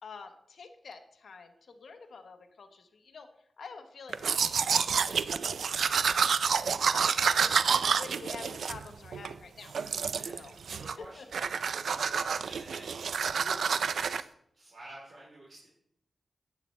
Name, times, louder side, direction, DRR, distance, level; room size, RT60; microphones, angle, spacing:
voice 1, 0.0-9.7 10.3-10.5 10.9-11.3, left 4 dB, 80° left, 6 dB, 0.9 m, -48 dB
Domestic sounds home sounds, 4.1-9.3 9.7-10.4 10.7-11.0 11.3-14.2, right 6 dB, 85° right, 0.3 m, -29 dB
voice 2, 10.1-11.2 11.7-14.2 14.5-15.7, right 1 dB, 60° right, -6 dB, 3.1 m, -50 dB
10.0 x 8.4 x 3.2 m, 0.72 s
wide cardioid pair, 90°, 0 cm